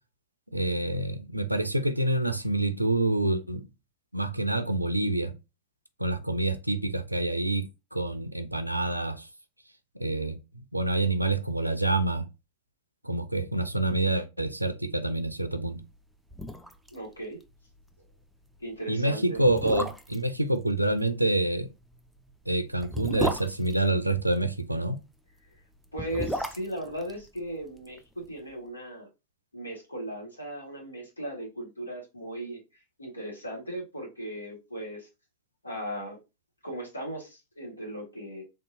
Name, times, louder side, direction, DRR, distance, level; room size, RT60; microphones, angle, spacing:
voice 1, 0.5-3.7 4.1-5.3 6.0-9.3 10.0-12.3 13.0-15.8 18.9-21.7 22.5-25.0, right 2 dB, 85° right, 0.4 m, -27 dB
sound 1, 15.9-16.0 16.3-17.0 17.2-17.3 17.7-17.9 18.6-18.7 19.4-20.3 21.8-24.5 25.7-28.0 28.2-28.3, right 1 dB, ahead, 0.4 m, -34 dB
voice 2, 16.9-17.4 18.6-19.4 25.9-29.1 29.5-32.6 33.0-35.1 35.6-36.2 36.6-38.4, right 1 dB, 80° left, 1.2 m, -37 dB
3.4 x 2.8 x 2.5 m
figure-of-eight pair, 90°, 0 cm